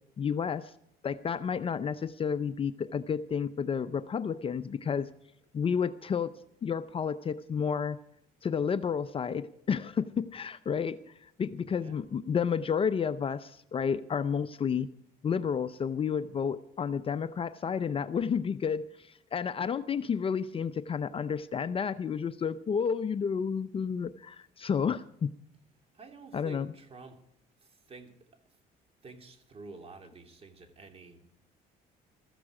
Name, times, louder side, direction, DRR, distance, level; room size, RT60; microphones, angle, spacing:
voice 1, 0.2-0.7 1.0-5.1 5.5-6.3 6.6-8.0 8.4-14.9 15.2-25.3 26.3-26.7, left 6 dB, 35° left, 12 dB, 0.6 m, -31 dB
voice 2, 11.7-12.1 12.3-12.5 25.9-27.2 27.6-28.1 29.0-31.3, right 4 dB, 35° right, 5 dB, 2.9 m, -50 dB
15.5 x 14.0 x 4.9 m, 0.72 s
cardioid pair, 110°, 17 cm